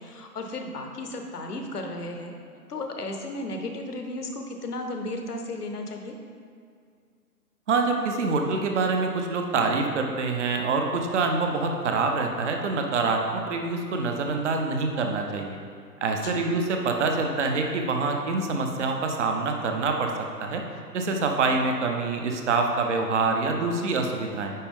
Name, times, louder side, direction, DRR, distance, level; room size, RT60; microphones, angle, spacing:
voice 1, 0.0-2.3 2.7-6.1 16.2-16.5, left 2 dB, 65° left, 4 dB, 1.1 m, -34 dB
voice 2, 7.7-15.6 16.0-20.6 20.9-24.5, right 3 dB, 45° right, 3 dB, 0.8 m, -26 dB
9.8 x 4.3 x 3.7 m, 2.2 s
figure-of-eight pair, 135°, 49 cm